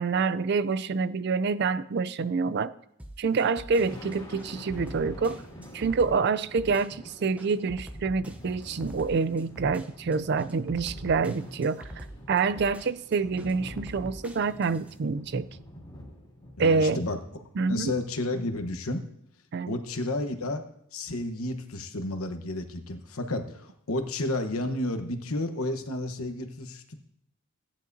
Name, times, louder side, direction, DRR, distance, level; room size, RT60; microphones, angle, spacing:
voice 1, 0.0-2.7 3.2-5.4 5.7-15.5 16.6-17.0 17.6-17.9 19.5-19.7, right 4 dB, 50° right, 0.4 m, -27 dB
sound 1, 3.0-15.0, right 1 dB, 5° right, 0.6 m, -44 dB
Thunder, 3.7-18.0, equal, 20° left, 2.2 m, -46 dB
voice 2, 16.6-17.4 17.7-19.0 19.7-20.6 20.9-27.0, left 2 dB, 80° left, 1.1 m, -31 dB
16.5 x 10.5 x 2.7 m
head